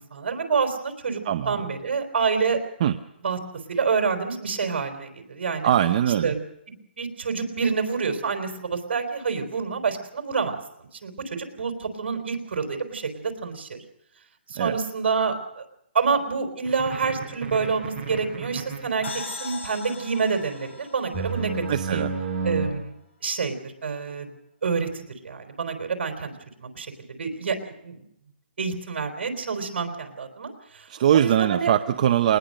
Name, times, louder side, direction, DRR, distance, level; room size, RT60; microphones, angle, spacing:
voice 1, 0.1-1.2 1.5-2.6 3.2-3.4 3.7-5.7 6.2-6.4 6.7-10.5 11.0-13.8 14.5-15.6 15.9-21.6 21.9-22.0 22.4-22.9 23.2-24.3 24.6-26.3 26.6-26.9 27.2-28.0 28.6-31.7, right 5 dB, 65° right, 5 dB, 3.9 m, -27 dB
voice 2, 1.2-1.6 2.8-3.0 5.6-6.3 14.5-14.8 21.7-22.1 30.9-32.4, right 10 dB, 40° right, 7 dB, 0.8 m, -21 dB
sound 1, 16.7-19.1 21.1-22.7, right 4 dB, 20° right, 5.9 m, -31 dB
sound 2, 19.0-22.6, left 4 dB, 80° left, 7.9 m, -39 dB
21.0 x 19.5 x 6.6 m, 0.80 s
hypercardioid pair, 165°, 6 cm